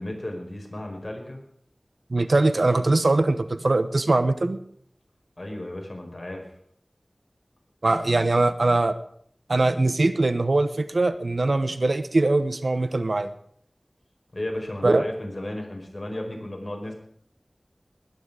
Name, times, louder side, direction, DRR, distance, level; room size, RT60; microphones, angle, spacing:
voice 1, 0.0-1.4 5.4-6.5 14.3-16.9, left 1 dB, 45° left, 1 dB, 5.1 m, -34 dB
voice 2, 2.1-4.6 7.8-9.0 9.5-13.3 14.8-15.0, right 2 dB, 70° right, 12 dB, 1.1 m, -22 dB
20.5 x 10.0 x 5.0 m, 0.64 s
wide cardioid pair, 50°, 0 cm